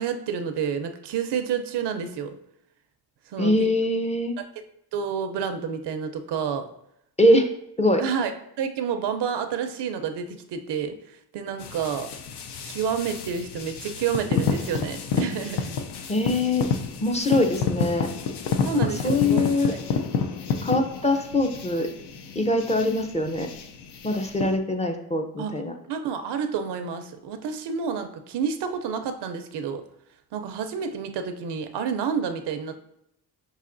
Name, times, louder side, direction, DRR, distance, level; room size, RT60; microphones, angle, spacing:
voice 1, 0.0-2.4 3.3-3.7 4.9-6.7 8.0-8.3 8.6-10.9 11.3-12.1 12.6-15.8 18.6-19.8 25.4-25.6 25.9-29.8 30.3-32.8, right 7 dB, 85° right, 8 dB, 0.5 m, -29 dB
voice 2, 3.4-4.4 7.2-7.5 7.8-8.0 16.1-16.7 17.0-18.1 19.0-19.7 20.6-21.9 22.4-23.5 24.0-25.7, left 1 dB, 20° left, 3 dB, 0.5 m, -23 dB
sound 1, 11.6-24.6, left 6 dB, 80° left, 0.5 m, -30 dB
5.6 x 2.9 x 2.5 m, 0.76 s
cardioid pair, 80°, 40 cm